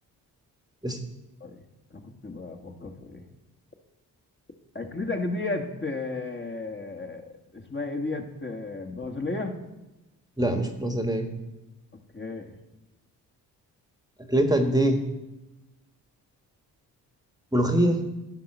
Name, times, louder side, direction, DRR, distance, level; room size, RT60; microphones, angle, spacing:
voice 1, 1.9-3.2 4.7-7.2 7.5-9.6 12.1-12.5, left 3 dB, 25° left, 3 dB, 1.6 m, -33 dB
voice 2, 10.4-11.3 14.3-15.0 17.5-18.0, right 1 dB, 10° right, 4 dB, 1.4 m, -23 dB
11.0 x 3.9 x 7.3 m, 0.98 s
supercardioid pair, 50°, 41 cm